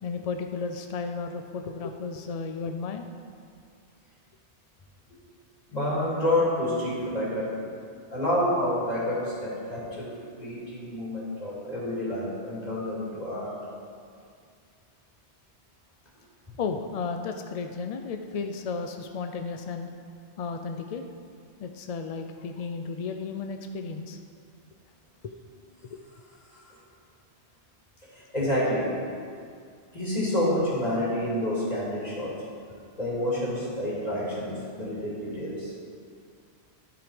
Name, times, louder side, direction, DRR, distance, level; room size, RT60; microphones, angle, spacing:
voice 1, 0.0-3.0 16.6-19.9 20.4-21.0 21.6-24.2 25.2-25.4 25.9-26.0, left 4 dB, 60° left, 5 dB, 0.4 m, -33 dB
voice 2, 5.7-7.7 8.1-13.5 26.5-26.8 28.0-28.9 29.9-32.3 33.0-35.7, left 1 dB, 35° left, -8 dB, 2.9 m, -28 dB
12.5 x 4.9 x 5.0 m, 2.3 s
omnidirectional pair, 1.1 m